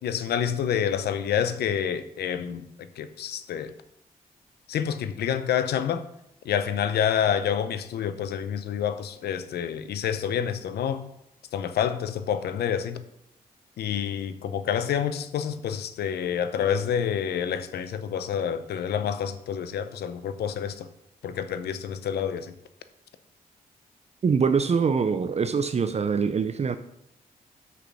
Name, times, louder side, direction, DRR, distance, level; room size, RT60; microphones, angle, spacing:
voice 1, 0.0-3.7 4.7-6.0 6.4-11.0 11.5-13.0 13.8-20.9 21.2-22.5, left 8 dB, 90° left, 0.7 m, -28 dB
voice 2, 24.2-26.8, right 5 dB, 40° right, 0.5 m, -24 dB
6.2 x 5.7 x 6.1 m
cardioid pair, 65°, 16 cm